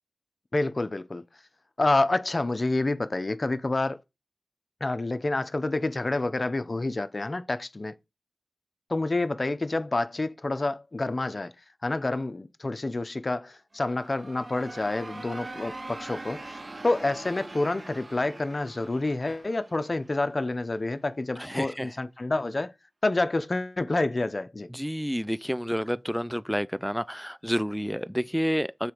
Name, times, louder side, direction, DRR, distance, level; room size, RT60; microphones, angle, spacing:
voice 1, 0.5-1.2 1.8-4.0 4.8-8.0 8.9-11.5 11.8-22.7 23.0-24.7, left 2 dB, 50° left, 0.7 m, -28 dB
sound 1, 13.7-20.5, right 2 dB, 50° right, 0.6 m, -42 dB
voice 2, 21.4-21.9 24.7-28.9, equal, ahead, 0.3 m, -29 dB
6.9 x 3.9 x 4.6 m
wide cardioid pair, 50°, 0 cm